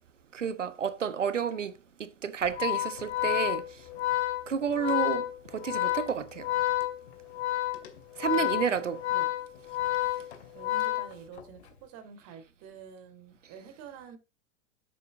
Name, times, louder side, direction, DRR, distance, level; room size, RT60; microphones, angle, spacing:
voice 1, 0.3-1.7 2.0-3.6 4.5-5.3 5.5-6.5 8.2-9.0, right 7 dB, 80° right, 1.4 m, -30 dB
Organ, 2.4-11.6, left 15 dB, 60° left, 2.4 m, -30 dB
voice 2, 8.3-8.8 9.1-9.3 10.5-14.2, right 6 dB, 40° right, 3.4 m, -48 dB
10.5 x 8.5 x 3.9 m
figure-of-eight pair, 95°, 37 cm